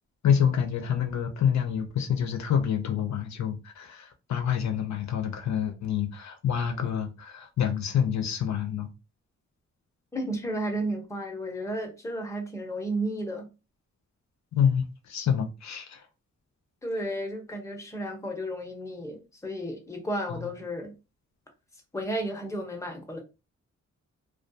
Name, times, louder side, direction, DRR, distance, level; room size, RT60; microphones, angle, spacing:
voice 1, 0.2-8.9 14.5-16.0 20.3-20.4, left 8 dB, 70° left, 0.5 m, -27 dB
voice 2, 10.1-13.5 16.8-20.9 21.9-23.2, right 1 dB, 10° left, 0.7 m, -33 dB
2.3 x 2.2 x 2.6 m
cardioid pair, 90°, 29 cm